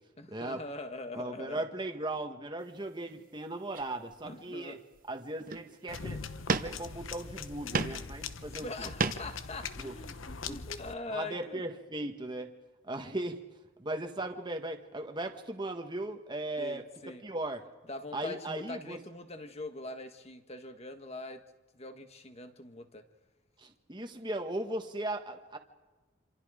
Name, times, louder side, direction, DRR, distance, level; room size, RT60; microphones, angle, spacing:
voice 1, 0.2-1.7 4.2-4.8 8.5-11.6 16.6-17.2 17.9-21.5 21.7-23.0, left 2 dB, 30° left, 7 dB, 1.6 m, -42 dB
voice 2, 1.1-4.8 5.1-8.9 9.8-9.9 10.5-10.6 11.1-12.5 12.8-13.4 13.8-16.8 17.2-17.6 18.1-19.0 23.6-25.6, right 2 dB, 25° right, 4 dB, 1.4 m, -37 dB
sound 1, 3.0-3.2 3.7-4.5 4.9-5.1 5.4-5.8 6.5-7.1 7.5-8.1 8.4-9.4, right 4 dB, 45° right, 1.0 m, -34 dB
sound 2, 5.9-10.9, left 5 dB, 85° left, 1.0 m, -41 dB
27.0 x 27.0 x 5.1 m, 1.2 s
head